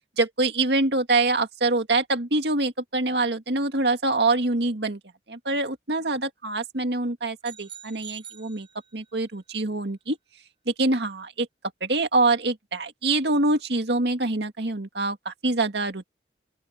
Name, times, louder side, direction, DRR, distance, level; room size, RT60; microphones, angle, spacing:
voice 1, 0.2-5.0 5.3-8.7 8.9-10.2 10.7-11.5 11.8-16.1, right 2 dB, 75° right, 2.1 m, -25 dB
sound 1, 7.4-9.3, right 9 dB, 30° right, 7.1 m, -45 dB
open air
head